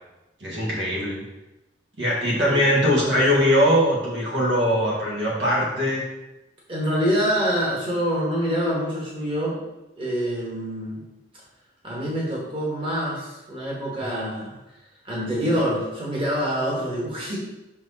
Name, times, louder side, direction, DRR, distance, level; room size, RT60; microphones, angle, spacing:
voice 1, 0.4-1.2 2.0-6.0, equal, 65° right, -4 dB, 1.7 m, -21 dB
voice 2, 6.7-9.6 10.0-11.0 11.8-14.6 15.0-17.4, equal, 30° right, -5 dB, 1.7 m, -26 dB
5.7 x 4.7 x 4.2 m, 0.97 s
head